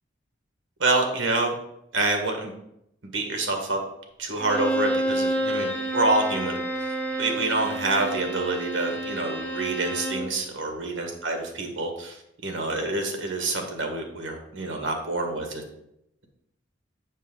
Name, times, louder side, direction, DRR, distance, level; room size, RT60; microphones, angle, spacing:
voice 1, 0.8-1.5 1.9-2.5 3.1-3.8 4.2-12.2 12.4-15.6, right 2 dB, 90° right, 3 dB, 1.6 m, -27 dB
Bowed string instrument, 4.4-10.3, right 1 dB, 5° left, 1.0 m, -29 dB
7.5 x 6.5 x 3.8 m, 0.79 s
head